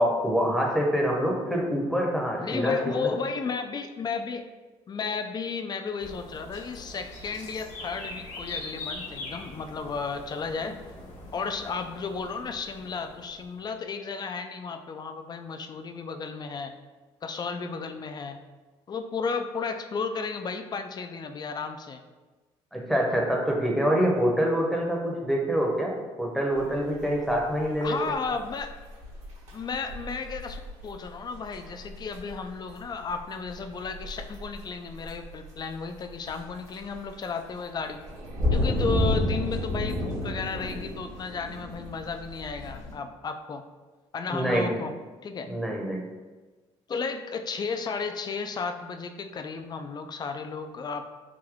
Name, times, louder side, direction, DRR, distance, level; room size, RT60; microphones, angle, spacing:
voice 1, 0.0-3.1 22.7-28.0 38.6-38.9 44.3-44.8 45.5-46.0, equal, ahead, -2 dB, 0.7 m, -26 dB
voice 2, 2.4-4.4 4.9-10.8 11.3-16.7 17.2-18.4 18.9-22.0 27.8-28.8 29.5-38.0 38.5-43.6 44.1-44.9 45.2-45.5 46.9-51.2, left 5 dB, 35° left, 7 dB, 0.4 m, -33 dB
sound 1, 6.0-13.6, left 2 dB, 75° left, 0.9 m, -42 dB
sound 2, 26.5-42.9, left 1 dB, 65° right, 1.3 m, -33 dB
3.6 x 2.6 x 3.4 m, 1.3 s
supercardioid pair, 80°, 12 cm